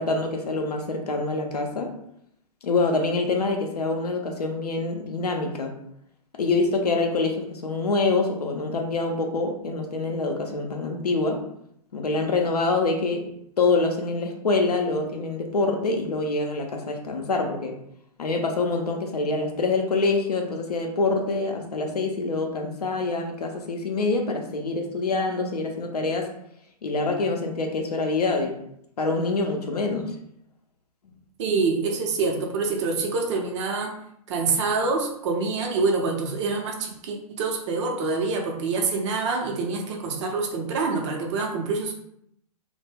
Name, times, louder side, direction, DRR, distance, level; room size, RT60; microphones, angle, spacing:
voice 1, 0.0-1.9 2.6-5.8 6.4-11.4 11.9-13.3 13.6-17.8 18.2-26.3 26.8-28.6 29.0-30.2, left 3 dB, 85° left, 3 dB, 0.5 m, -25 dB
voice 2, 31.4-34.0 34.3-41.9, right 4 dB, 50° right, 2 dB, 0.6 m, -26 dB
2.1 x 2.1 x 3.3 m, 0.73 s
figure-of-eight pair, 115°, 20 cm